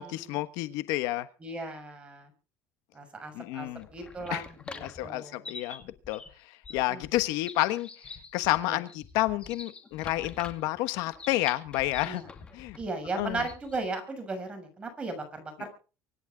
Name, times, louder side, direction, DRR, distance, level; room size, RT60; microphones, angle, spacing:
voice 1, 0.0-1.3 3.3-3.9 4.3-4.4 4.8-6.2 6.7-7.9 8.3-12.2 12.5-12.8 13.2-13.4, left 17 dB, 70° left, 12 dB, 1.3 m, -30 dB
voice 2, 1.4-2.3 2.9-5.5 6.7-7.1 8.6-8.8 12.0-12.3 12.8-15.7, right 3 dB, 15° right, 6 dB, 6.6 m, -37 dB
sound 1, 3.7-13.9, left 4 dB, 15° left, 2.4 m, -46 dB
25.0 x 11.5 x 3.9 m, 0.36 s
cardioid pair, 170°, 6 cm